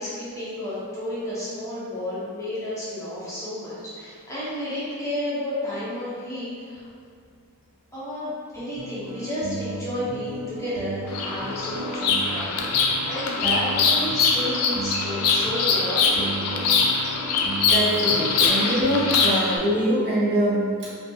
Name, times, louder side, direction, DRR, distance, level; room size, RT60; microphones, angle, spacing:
voice 1, 0.0-6.9 7.9-16.7, left 1 dB, 15° left, -11 dB, 0.6 m, -32 dB
sound 1, 8.8-19.4, right 2 dB, 80° right, 0.4 m, -35 dB
Bird vocalization bird call bird song, 11.1-19.6, left 4 dB, 85° left, 0.3 m, -23 dB
voice 2, 17.7-20.7, equal, 50° right, -9 dB, 0.8 m, -23 dB
2.6 x 2.2 x 2.6 m, 2.1 s
head